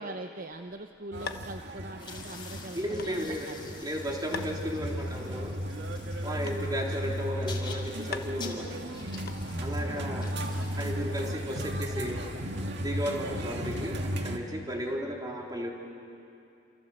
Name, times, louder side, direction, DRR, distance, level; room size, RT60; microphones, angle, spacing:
voice 1, 0.0-3.7 6.3-6.8 9.7-10.2, right 2 dB, 45° right, 6 dB, 0.8 m, -42 dB
sound 1, 0.5-9.8, left 4 dB, 55° left, 1.1 m, -46 dB
sound 2, 1.1-14.4, equal, 65° right, 1.9 m, -35 dB
sound 3, 2.0-12.9, left 4 dB, 25° left, 3.7 m, -49 dB
voice 2, 2.8-3.5 3.8-5.5 6.2-8.7 9.6-10.3 10.8-12.2 12.8-15.7, equal, 20° right, -1 dB, 3.6 m, -34 dB
28.0 x 27.5 x 7.8 m, 2.6 s
head